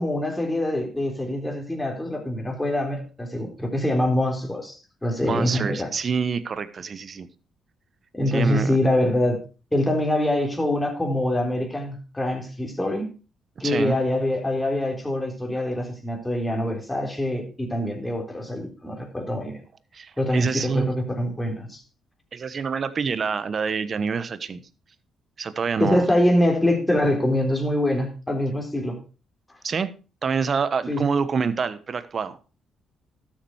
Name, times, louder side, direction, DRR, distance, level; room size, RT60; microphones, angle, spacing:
voice 1, 0.0-5.9 8.1-9.4 9.7-13.1 13.6-19.6 20.2-21.8 25.8-29.0 30.9-31.0, left 1 dB, 10° left, 3.8 m, -24 dB
voice 2, 5.2-7.3 8.3-8.8 13.6-14.0 19.9-20.9 22.3-24.6 25.4-26.1 29.6-29.9 30.2-32.4, right 5 dB, 45° right, 1.1 m, -26 dB
12.5 x 7.5 x 4.7 m
cardioid pair, 90°, 0 cm